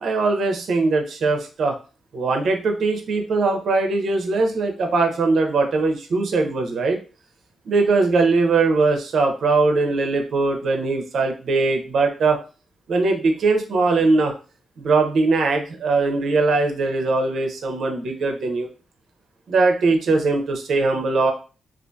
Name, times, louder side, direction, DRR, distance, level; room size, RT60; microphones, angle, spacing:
voice 1, 0.0-1.7 2.1-7.0 7.7-12.4 12.9-14.3 14.8-18.7 19.5-21.3, right 3 dB, 65° right, 4 dB, 0.5 m, -20 dB
2.5 x 2.4 x 2.2 m, 0.35 s
wide cardioid pair, 145°, 0 cm